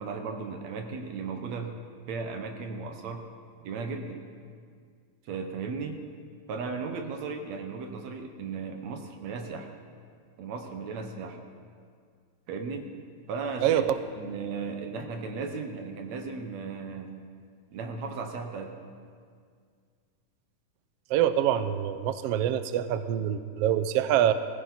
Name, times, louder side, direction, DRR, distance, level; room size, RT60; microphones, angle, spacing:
voice 1, 0.0-1.8 2.1-3.2 3.6-4.2 5.2-6.0 6.5-9.7 10.4-11.4 12.5-12.9 13.3-13.8 14.2-17.2 17.7-18.7, right 4 dB, 65° right, 4 dB, 2.2 m, -36 dB
voice 2, 13.6-14.0 21.1-24.3, right 10 dB, 85° right, 11 dB, 1.3 m, -25 dB
19.5 x 16.0 x 4.1 m, 2.1 s
omnidirectional pair, 3.5 m